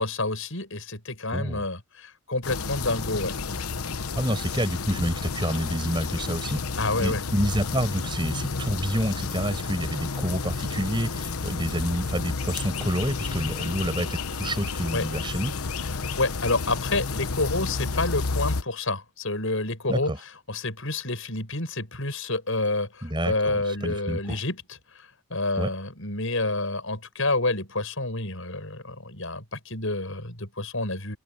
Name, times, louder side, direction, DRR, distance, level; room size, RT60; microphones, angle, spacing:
voice 1, 0.0-3.4 6.8-7.2 14.9-15.1 16.2-20.1 20.5-31.2, left 2 dB, 65° left, 7.6 m, -29 dB
voice 2, 1.3-1.6 4.1-6.6 7.0-15.5 19.9-20.2 23.0-24.4 25.6-25.7, equal, 20° right, 8.0 m, -28 dB
sound 1, 2.4-18.6, left 4 dB, 80° left, 1.1 m, -31 dB
open air
head